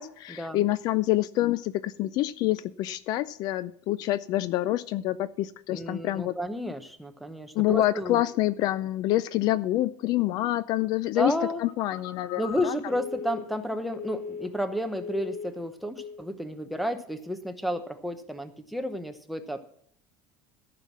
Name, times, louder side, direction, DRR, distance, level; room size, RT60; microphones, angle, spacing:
voice 1, 0.0-6.3 7.5-12.7, left 15 dB, 50° left, 16 dB, 0.4 m, -27 dB
voice 2, 5.7-8.2 11.2-11.6 12.4-19.6, equal, ahead, 9 dB, 0.9 m, -32 dB
Telephone, 11.7-14.7 15.0-15.6 16.0-16.3, left 6 dB, 85° left, 1.5 m, -39 dB
14.0 x 5.9 x 7.3 m, 0.64 s
cardioid pair, 160°, 9 cm